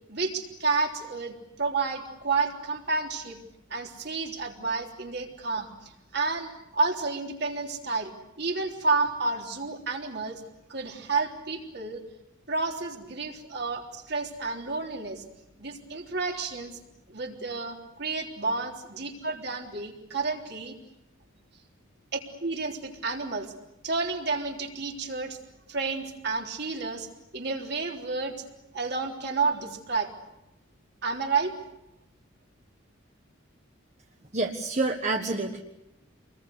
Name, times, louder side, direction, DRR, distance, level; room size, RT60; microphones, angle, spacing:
voice 1, 0.1-3.4 3.7-8.1 8.4-10.4 10.7-12.0 12.5-15.2 15.6-16.8 17.1-20.7 22.1-23.5 23.8-25.4 25.7-27.1 27.3-28.4 28.7-30.1 31.0-31.5, right 4 dB, 55° right, 1 dB, 3.7 m, -30 dB
voice 2, 34.3-35.6, right 3 dB, 35° right, 4 dB, 1.4 m, -28 dB
28.0 x 21.5 x 8.2 m, 0.91 s
head